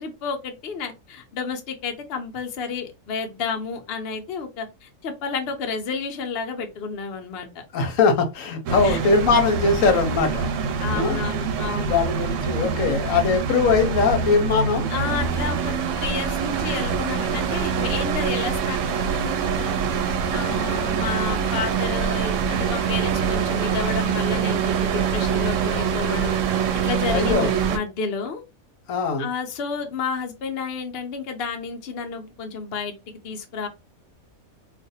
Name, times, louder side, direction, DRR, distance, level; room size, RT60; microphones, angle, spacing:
voice 1, 0.0-7.6 8.8-9.1 10.8-12.0 14.9-26.4 26.8-28.4 29.2-33.0 33.2-33.7, left 5 dB, 55° left, 0.7 m, -31 dB
voice 2, 7.7-10.5 10.9-11.2 11.6-14.9 27.1-27.5 28.9-29.3, left 4 dB, 70° left, 1.1 m, -21 dB
sound 1, 8.7-27.8, right 6 dB, 70° right, 0.9 m, -24 dB
2.5 x 2.4 x 3.9 m
omnidirectional pair, 1.4 m